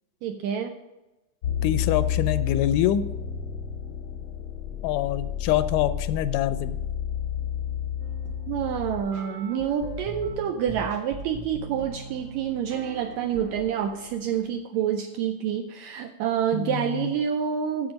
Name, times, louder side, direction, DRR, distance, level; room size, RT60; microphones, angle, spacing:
voice 1, 0.2-0.7 8.5-17.9, right 8 dB, 80° right, 6 dB, 1.6 m, -28 dB
sound 1, 1.4-9.0, left 9 dB, 65° left, 1.2 m, -30 dB
voice 2, 1.6-3.1 4.8-6.8 16.5-17.1, left 11 dB, 85° left, 13 dB, 2.1 m, -25 dB
sound 2, 8.0-14.5, right 2 dB, 60° right, 2.0 m, -41 dB
7.9 x 7.6 x 5.1 m, 1.0 s
omnidirectional pair, 3.7 m